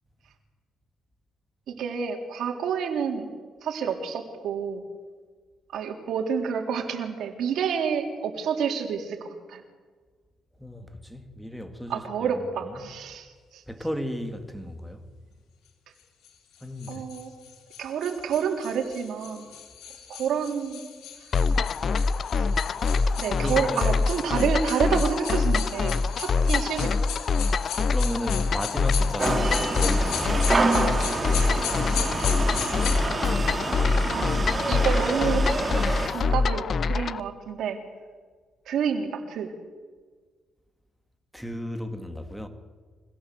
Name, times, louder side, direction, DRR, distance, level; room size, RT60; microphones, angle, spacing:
voice 1, 1.7-3.3 3.6-4.8 5.7-9.6 11.9-13.6 16.9-17.3 17.8-19.5 20.1-20.9 22.3-22.5 23.2-26.9 27.7-27.8 30.8-30.9 34.1-35.6 36.1-37.8 38.7-39.5, right 7 dB, 75° right, 3.7 m, -29 dB
voice 2, 10.6-12.4 12.7-12.9 13.7-15.1 16.6-17.1 21.9-22.4 22.7-23.2 23.4-23.8 27.6-30.5 36.0-36.3 41.3-42.5, equal, ahead, 2.5 m, -35 dB
sound 1, 16.2-33.0, left 9 dB, 80° left, 4.0 m, -37 dB
sound 2, 21.3-37.2, left 4 dB, 50° left, 0.7 m, -25 dB
sound 3, 29.2-36.1, right 3 dB, 30° right, 3.0 m, -27 dB
25.0 x 17.0 x 7.9 m
cardioid pair, 90°, 0 cm